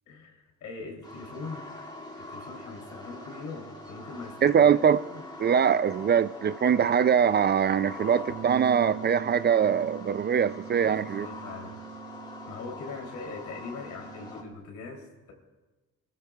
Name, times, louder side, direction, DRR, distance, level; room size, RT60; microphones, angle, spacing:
voice 1, 0.1-1.7 2.2-4.6 4.9-5.3 10.7-11.8 12.5-15.3, left 4 dB, 80° left, 3.3 m, -41 dB
sound 1, 1.0-14.4, left 2 dB, 15° left, 2.9 m, -44 dB
voice 2, 4.4-5.0 5.4-11.3, right 7 dB, 35° right, 0.4 m, -23 dB
Bass guitar, 8.3-14.5, right 9 dB, 80° right, 1.1 m, -43 dB
24.0 x 14.5 x 2.4 m
cardioid pair, 90°, 30 cm